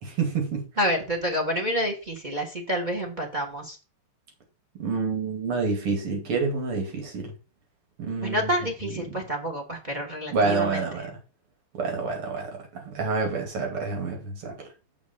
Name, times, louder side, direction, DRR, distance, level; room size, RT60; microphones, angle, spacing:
voice 1, 0.0-0.6 4.8-7.3 8.0-8.5 8.8-8.9 10.3-11.1 11.7-14.7, right 4 dB, 85° right, 3.4 m, -28 dB
voice 2, 0.8-3.8 8.2-11.0, equal, 25° right, 1.3 m, -28 dB
7.5 x 5.4 x 5.3 m
omnidirectional pair, 2.4 m